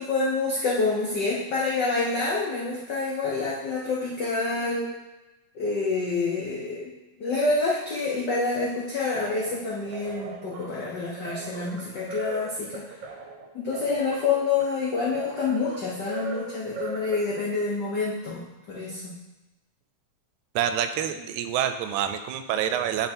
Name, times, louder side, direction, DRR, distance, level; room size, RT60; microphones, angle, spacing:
voice 1, 0.0-4.9 5.5-6.9 7.2-12.8 13.5-18.4 18.7-19.1, left 3 dB, 75° left, -5 dB, 0.9 m, -27 dB
sound 1, 9.4-17.7, right 4 dB, 65° right, 1.5 m, -39 dB
voice 2, 20.6-23.1, right 9 dB, 85° right, 9 dB, 2.0 m, -27 dB
9.8 x 3.8 x 4.3 m, 1.0 s
omnidirectional pair, 3.3 m